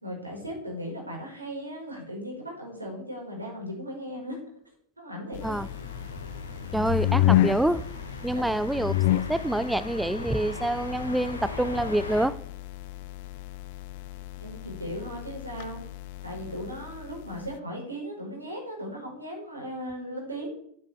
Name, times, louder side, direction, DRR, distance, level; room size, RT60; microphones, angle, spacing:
voice 1, 0.0-4.4 5.0-5.6 8.3-8.4 14.4-15.8 16.2-20.5, equal, 80° right, 5.2 m, -37 dB
sound 1, 5.3-17.6, left 14 dB, 50° left, 0.5 m, -31 dB
sound 2, 5.4-12.3, left 1 dB, 80° left, 2.9 m, -40 dB
voice 2, 6.7-7.9 8.2-12.4, right 1 dB, 5° right, 0.4 m, -27 dB
9.1 x 8.3 x 8.3 m
figure-of-eight pair, 90°, 0 cm